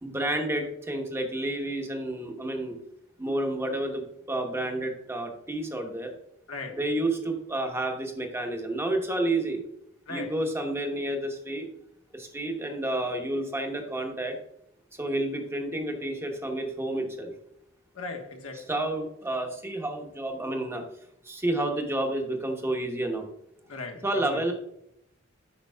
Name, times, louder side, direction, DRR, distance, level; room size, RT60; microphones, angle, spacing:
voice 1, 0.0-2.8 3.2-6.1 6.8-9.6 10.1-11.7 12.1-14.4 15.0-17.3 18.7-20.8 21.2-23.2 24.0-24.5, right 1 dB, 10° right, 0.9 m, -30 dB
voice 2, 6.5-6.8 10.1-10.4 17.9-18.7 23.7-24.4, left 3 dB, 90° left, 1.2 m, -38 dB
8.5 x 5.3 x 2.2 m
head